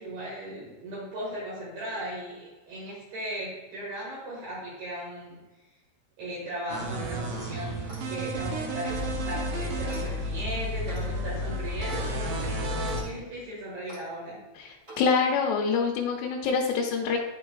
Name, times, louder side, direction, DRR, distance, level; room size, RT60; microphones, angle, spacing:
voice 1, 0.0-5.4 6.2-7.8 8.1-14.4, right 1 dB, 60° right, -7 dB, 3.3 m, -37 dB
sound 1, 6.7-13.0, equal, 85° right, 2.0 m, -31 dB
Clock, 7.7-8.2 8.8-9.1 9.9-10.1 10.8-11.1 11.9-12.0 12.8-13.1 13.9-14.0 14.8-15.1, right 2 dB, 35° right, 1.3 m, -45 dB
voice 2, 14.6-17.2, left 5 dB, 85° left, -1 dB, 3.4 m, -26 dB
12.5 x 4.7 x 2.4 m, 1.2 s
omnidirectional pair, 5.7 m